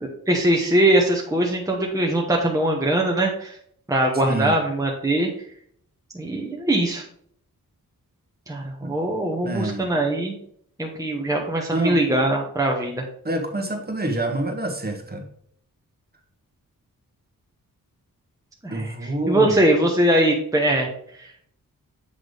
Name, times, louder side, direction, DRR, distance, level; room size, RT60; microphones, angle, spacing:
voice 1, 0.0-3.6 3.9-5.3 6.1-7.0 8.5-10.4 10.8-13.0 18.6-21.3, right 1 dB, 10° right, -1 dB, 1.1 m, -22 dB
voice 2, 4.2-4.5 8.8-9.0 9.4-9.9 11.7-12.0 13.2-15.3 18.7-19.6, right 2 dB, 25° right, 3 dB, 1.4 m, -27 dB
8.0 x 3.6 x 5.0 m, 0.65 s
wide cardioid pair, 105°, 35 cm